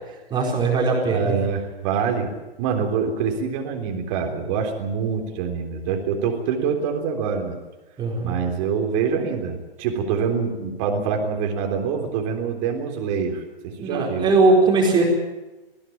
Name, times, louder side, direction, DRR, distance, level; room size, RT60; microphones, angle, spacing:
voice 1, 0.3-1.3 8.0-8.3 13.8-15.1, right 3 dB, 15° right, 0 dB, 4.7 m, -19 dB
voice 2, 1.1-7.6 8.2-14.3, right 6 dB, 35° right, 3 dB, 3.6 m, -25 dB
20.5 x 16.0 x 9.0 m, 1.1 s
hypercardioid pair, 145°, 30 cm